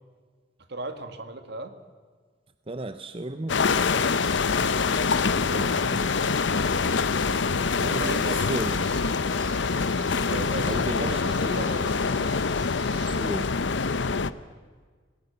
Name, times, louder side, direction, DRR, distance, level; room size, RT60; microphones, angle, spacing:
voice 1, 0.7-1.7 7.8-8.4 10.2-12.3, right 2 dB, 60° right, 9 dB, 1.9 m, -36 dB
voice 2, 2.7-3.6 5.3-6.1 7.8-8.8 10.7-11.2 13.0-13.5, right 2 dB, 30° right, 10 dB, 0.7 m, -34 dB
sound 1, 3.5-14.3, left 4 dB, 65° left, 0.7 m, -25 dB
sound 2, 4.0-13.3, right 4 dB, 75° right, 4.7 m, -48 dB
27.5 x 18.5 x 6.8 m, 1.5 s
head